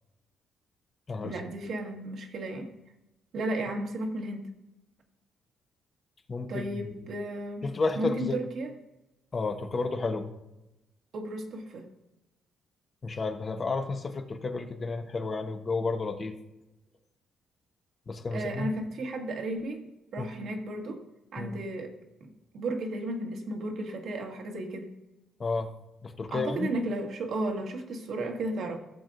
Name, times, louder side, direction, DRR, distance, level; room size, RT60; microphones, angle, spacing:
voice 1, 1.2-2.7 3.3-4.5 6.5-8.7 11.1-11.9 18.3-19.8 20.1-21.0 21.3-21.9 22.2-24.9 26.3-28.8, right 1 dB, 65° right, 3 dB, 1.7 m, -34 dB
voice 2, 6.3-6.9 7.6-8.4 9.3-10.3 13.0-16.3 18.1-18.7 20.2-20.3 21.4-21.6 25.4-25.7 26.0-26.7, left 3 dB, 35° left, 5 dB, 1.1 m, -31 dB
15.0 x 7.3 x 2.5 m, 0.93 s
cardioid pair, 90°, 0 cm